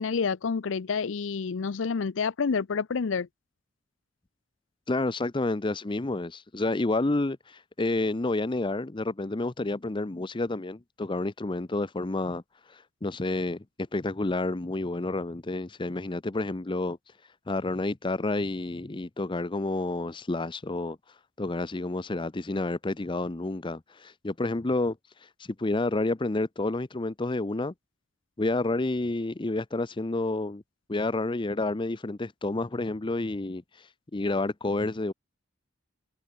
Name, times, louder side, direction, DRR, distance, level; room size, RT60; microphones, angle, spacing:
voice 1, 0.0-3.3, left 5 dB, 80° left, 0.6 m, -28 dB
voice 2, 4.9-12.4 12.7-13.6 13.9-17.0 17.5-21.0 21.4-25.0 25.2-25.3 25.6-27.7 28.4-30.6 30.9-35.1, left 2 dB, 25° left, 0.7 m, -29 dB
head